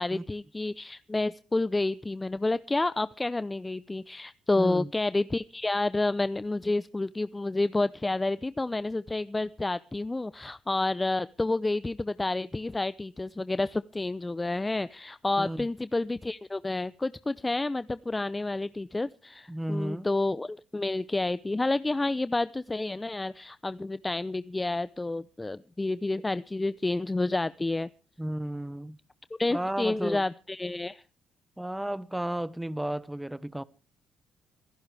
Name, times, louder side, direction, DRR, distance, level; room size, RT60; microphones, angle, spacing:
voice 1, 0.0-27.9 29.4-31.0, left 2 dB, 20° left, 0.6 m, -29 dB
voice 2, 4.6-4.9 15.4-15.7 19.5-20.1 28.2-29.0 29.5-30.2 31.6-33.6, right 1 dB, 10° right, 1.1 m, -33 dB
26.0 x 11.5 x 3.4 m
supercardioid pair, 60°, 0 cm